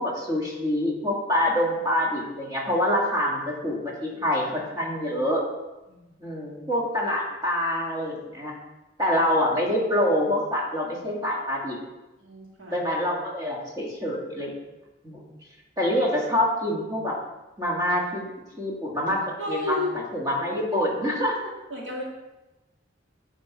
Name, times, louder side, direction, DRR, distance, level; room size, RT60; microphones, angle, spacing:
voice 1, 0.0-5.4 6.2-8.5 9.0-11.8 12.7-14.5 15.0-15.3 15.8-17.2 17.6-18.2 18.6-21.4, left 1 dB, 20° right, -4 dB, 1.7 m, -26 dB
voice 2, 12.2-12.8 19.4-19.9 20.5-20.6 21.7-22.0, left 2 dB, 80° right, -4 dB, 2.2 m, -32 dB
9.7 x 3.5 x 4.6 m, 1.0 s
head